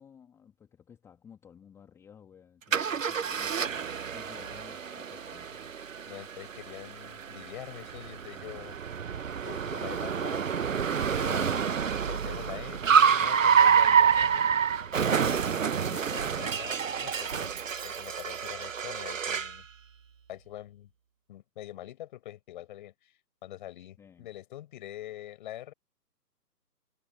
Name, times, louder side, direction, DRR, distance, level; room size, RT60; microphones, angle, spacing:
voice 1, 0.0-5.5 24.0-24.3, left 7 dB, 5° left, 1.8 m, -54 dB
Car, 2.7-19.6, right 7 dB, 50° right, 0.9 m, -28 dB
voice 2, 6.1-8.8 9.4-10.5 10.7-14.5 15.0-15.5 15.8-17.5 17.8-19.7 20.3-20.9 21.3-23.1 23.4-25.7, left 13 dB, 30° left, 5.2 m, -44 dB
figure-of-eight pair, 140°, 49 cm